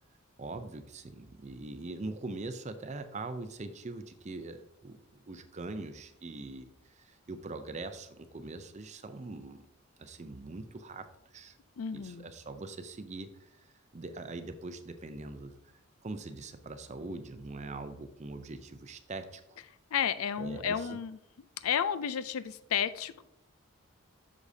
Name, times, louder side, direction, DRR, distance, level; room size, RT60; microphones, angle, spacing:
voice 1, 0.4-9.7 10.0-11.6 11.9-15.6 16.0-19.6 20.4-21.0, right 2 dB, 35° right, 9 dB, 0.5 m, -42 dB
voice 2, 11.8-12.3 19.9-21.2 21.6-23.2, left 8 dB, 75° left, 14 dB, 0.4 m, -32 dB
8.1 x 6.4 x 2.7 m, 0.80 s
head